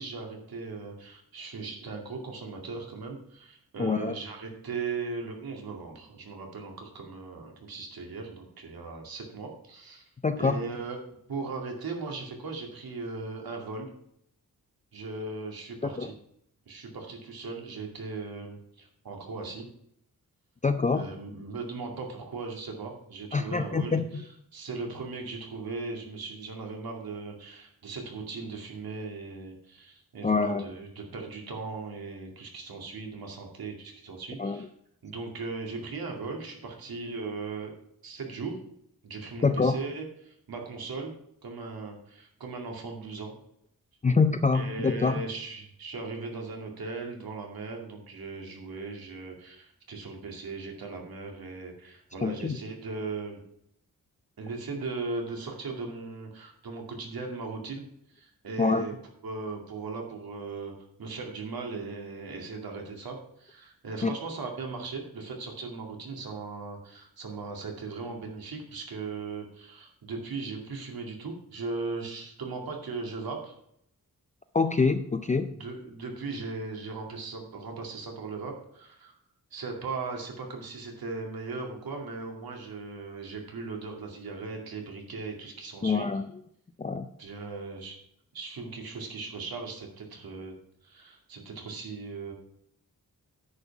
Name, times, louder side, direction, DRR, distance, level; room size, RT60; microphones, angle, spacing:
voice 1, 0.0-10.1 10.4-11.0 11.3-13.9 14.9-16.1 16.7-19.6 20.9-24.2 24.5-34.7 35.0-37.7 38.0-38.6 39.0-41.1 41.4-43.3 44.5-53.4 54.4-58.9 59.2-60.7 61.0-73.5 75.5-79.1 79.5-86.1 87.2-88.0 88.3-90.5 90.8-92.3, right 4 dB, 85° right, 2 dB, 2.3 m, -38 dB
voice 2, 3.8-4.1 10.2-10.6 15.8-16.1 20.6-21.1 23.3-24.2 30.2-30.6 34.4-34.7 39.4-39.8 44.0-45.2 52.2-52.6 58.6-58.9 64.0-64.1 74.5-75.6 85.8-86.3 86.8-87.1, left 4 dB, 20° left, 8 dB, 0.4 m, -25 dB
9.7 x 5.6 x 7.1 m, 0.72 s
wide cardioid pair, 160°, 35 cm